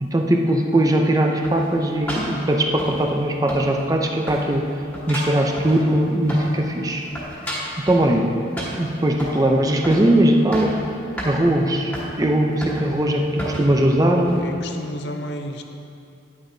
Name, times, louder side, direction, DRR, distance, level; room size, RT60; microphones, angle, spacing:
voice 1, 0.0-4.6 5.1-7.0 7.9-8.3 8.8-10.8 11.2-11.9 12.2-14.4, right 1 dB, 20° right, 2 dB, 0.5 m, -19 dB
sound 1, 1.4-3.2 3.5-4.0 4.3-6.6 6.9-8.1 8.6-9.4 9.8-10.1 10.4-10.8 11.2-11.3 11.9-12.1 12.6-13.0 13.4-13.7 14.3-14.4, equal, 5° left, 1.7 m, -32 dB
voice 2, 14.4-15.6, left 1 dB, 60° left, 5 dB, 0.6 m, -32 dB
10.0 x 9.7 x 2.7 m, 2.7 s
head